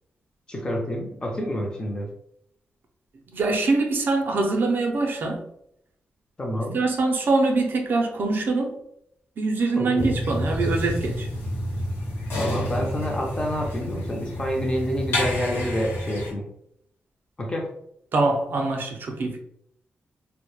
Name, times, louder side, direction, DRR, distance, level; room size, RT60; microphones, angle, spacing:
voice 1, 0.5-2.1 6.4-6.8 9.8-10.2 12.4-16.5 17.4-17.7, equal, 20° left, 0.4 m, -28 dB
voice 2, 3.3-5.5 6.7-8.8 9.4-11.3 18.1-19.4, right 3 dB, 55° right, 0.4 m, -24 dB
sound 1, 10.0-16.3, equal, 85° left, 0.9 m, -29 dB
2.1 x 2.0 x 3.0 m
wide cardioid pair, 155°, 4 cm